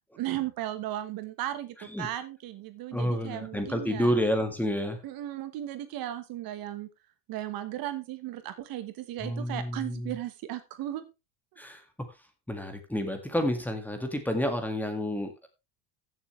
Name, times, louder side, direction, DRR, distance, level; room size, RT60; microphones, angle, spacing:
voice 1, 0.1-4.1 5.0-6.9 7.3-11.0, right 13 dB, 55° right, 11 dB, 1.3 m, -36 dB
voice 2, 2.9-5.0 9.2-10.1 11.6-11.8 12.5-15.5, equal, 5° left, 6 dB, 1.9 m, -29 dB
15.5 x 7.1 x 3.2 m, 0.25 s
cardioid pair, 125°, 42 cm